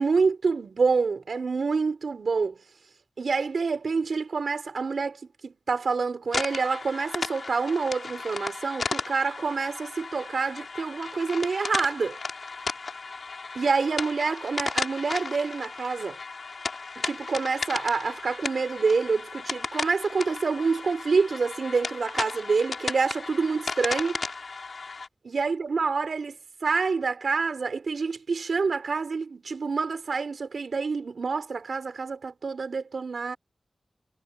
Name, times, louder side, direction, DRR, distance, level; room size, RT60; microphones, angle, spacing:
voice 1, 0.0-2.6 3.2-5.2 5.4-12.2 13.5-16.2 17.0-24.2 25.2-26.4 26.6-33.4, right 4 dB, 75° right, 5.9 m, -27 dB
sound 1, 6.3-25.1, left 4 dB, 65° left, 5.5 m, -35 dB
wide cardioid pair, 85°, 0 cm